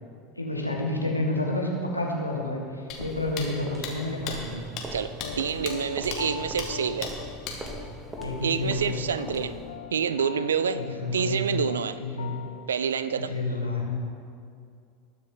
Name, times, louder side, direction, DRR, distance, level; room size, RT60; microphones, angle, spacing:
voice 1, 0.3-4.6 8.2-9.0 10.7-11.6 12.0-12.4 13.2-14.0, left 2 dB, 90° left, -1 dB, 1.6 m, -29 dB
sound 1, 2.9-3.0 3.4-3.5 3.8-3.9 4.3-4.4 4.8-4.9 5.2-5.3 5.7-5.8 6.1-6.2 6.6-6.7 7.0-7.1 7.4-7.6, left 8 dB, 45° left, 1.9 m, -34 dB
sound 2, 3.0-9.8, right 2 dB, 15° right, 1.4 m, -41 dB
voice 2, 4.9-7.1 8.4-9.5 9.9-10.8 11.1-12.0 12.7-13.3, right 7 dB, 75° right, 14 dB, 0.4 m, -27 dB
sound 3, 5.2-12.7, left 8 dB, 65° left, 0.6 m, -41 dB
20.0 x 6.9 x 3.8 m, 2.3 s
figure-of-eight pair, 75°, 0 cm